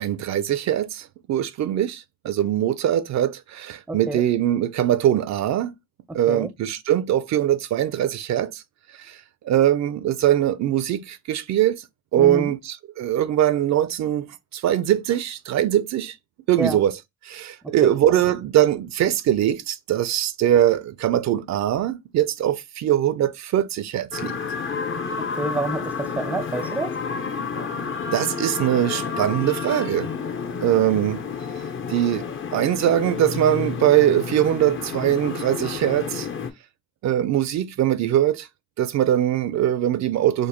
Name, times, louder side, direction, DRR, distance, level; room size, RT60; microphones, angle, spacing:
voice 1, 0.0-5.7 6.1-8.6 9.0-9.2 9.4-11.8 12.1-16.2 16.5-17.0 17.2-24.3 28.1-30.1 30.6-31.3 31.9-36.3 37.0-38.5 38.8-40.5, right 11 dB, 65° right, 0.5 m, -22 dB
voice 2, 3.9-4.2 6.1-6.5 12.2-12.5 16.6-16.8 17.6-17.9 25.4-27.0, right 2 dB, 5° right, 0.5 m, -28 dB
sound 1, 24.1-36.5, left 5 dB, 40° left, 0.7 m, -30 dB
5.0 x 2.1 x 2.9 m
cardioid pair, 90°, 30 cm